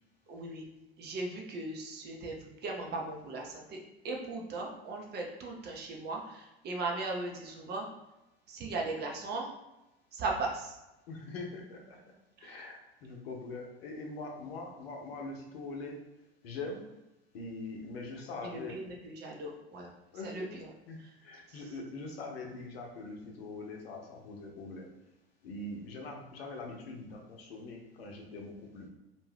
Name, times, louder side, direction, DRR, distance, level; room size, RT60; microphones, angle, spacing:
voice 1, 0.3-0.6 1.0-3.8 4.0-7.9 8.5-9.5 10.1-10.8 12.4-12.6 18.4-19.9 20.2-20.7 21.0-21.1 21.5-21.6, right 3 dB, 35° right, 0 dB, 0.6 m, -38 dB
voice 2, 11.1-12.0 12.4-16.0 16.4-16.8 17.3-18.7 20.1-20.5 20.9-24.9 25.4-28.9, left 3 dB, 70° left, 1 dB, 0.7 m, -43 dB
2.6 x 2.2 x 3.2 m, 0.94 s
hypercardioid pair, 85°, 31 cm